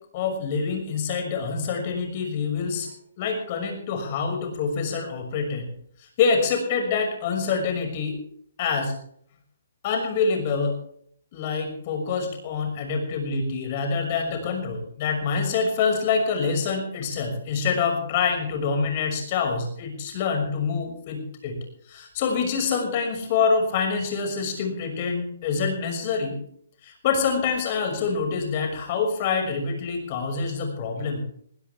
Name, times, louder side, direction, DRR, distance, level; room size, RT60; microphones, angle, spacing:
voice 1, 0.1-2.9 3.2-5.7 6.0-8.2 8.6-9.0 9.8-10.8 11.3-21.6 21.9-26.4 26.8-31.2, left 5 dB, 35° left, 4 dB, 6.0 m, -26 dB
20.0 x 16.5 x 3.6 m, 0.65 s
hypercardioid pair, 165°, 0 cm